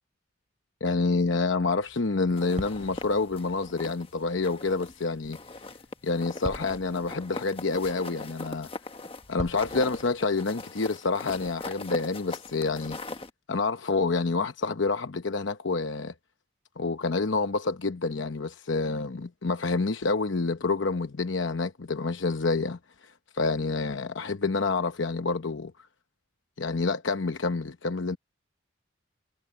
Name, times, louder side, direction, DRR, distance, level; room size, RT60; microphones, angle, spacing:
voice 1, 0.8-5.4 6.0-8.7 9.3-13.0 13.5-16.1 16.8-25.7 26.6-28.2, left 3 dB, 75° left, 0.9 m, -28 dB
sound 1, 1.2-10.2, equal, 35° right, 7.5 m, -45 dB
sound 2, 2.4-4.1 4.4-5.0 5.3-13.3, left 2 dB, 30° left, 1.3 m, -40 dB
head